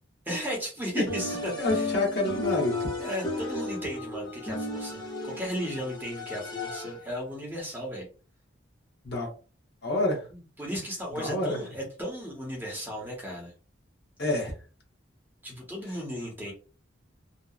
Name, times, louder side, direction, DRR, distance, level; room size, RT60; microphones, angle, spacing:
voice 1, 0.2-1.9 3.0-8.1 10.3-13.5 15.4-16.5, equal, 10° right, 0.7 m, -35 dB
sound 1, 1.1-7.1, left 3 dB, 20° left, 0.6 m, -34 dB
voice 2, 1.6-2.7 9.0-9.3 9.8-10.2 11.2-11.6 14.2-14.5, left 1 dB, 55° left, 0.9 m, -27 dB
2.7 x 2.1 x 2.3 m
head